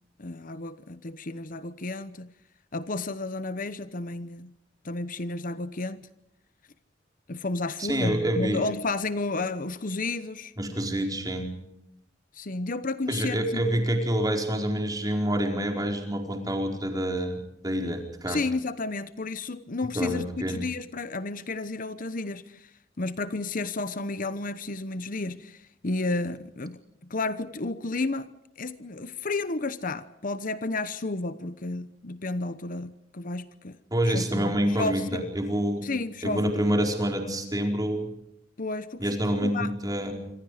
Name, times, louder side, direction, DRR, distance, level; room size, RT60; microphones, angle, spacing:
voice 1, 0.2-2.3 2.7-4.5 4.8-6.0 7.3-10.5 12.3-13.6 18.3-22.7 23.0-28.3 28.6-33.8 34.0-35.2 35.8-36.6 38.6-39.1 39.4-39.7, left 3 dB, 50° left, 1.0 m, -32 dB
voice 2, 7.8-8.6 10.6-11.5 13.1-18.4 19.9-20.6 33.9-35.9 36.2-38.1 39.0-40.1, equal, 20° right, 4.7 m, -27 dB
26.5 x 26.5 x 5.0 m
head